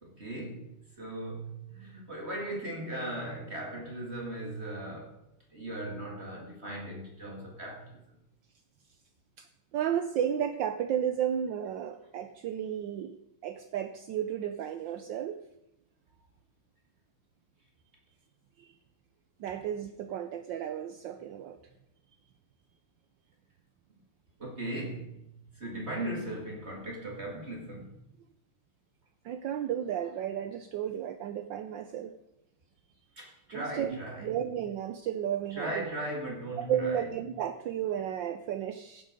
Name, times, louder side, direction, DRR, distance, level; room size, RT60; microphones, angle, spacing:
voice 1, 0.0-5.2 5.5-8.0 24.4-27.9 33.2-34.4 35.5-37.0, right 1 dB, 30° right, 2.1 m, -38 dB
voice 2, 9.7-13.2 13.4-15.4 18.6-18.7 19.4-21.6 29.2-32.1 33.5-35.8 36.6-39.0, right 9 dB, 70° right, 1.2 m, -33 dB
15.5 x 7.5 x 5.2 m
omnidirectional pair, 2.3 m